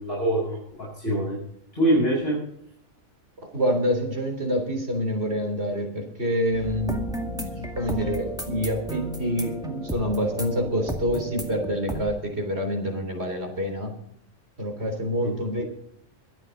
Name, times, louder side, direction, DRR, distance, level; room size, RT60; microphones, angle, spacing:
voice 1, 0.0-1.4 1.7-2.4 15.2-15.3, right 1 dB, 50° left, -5 dB, 6.9 m, -24 dB
voice 2, 3.5-13.9 14.6-15.6, equal, 55° right, 4 dB, 3.8 m, -27 dB
sound 1, 6.5-12.0, equal, 5° right, 2.1 m, -33 dB
23.5 x 8.8 x 3.9 m, 0.72 s
omnidirectional pair, 1.3 m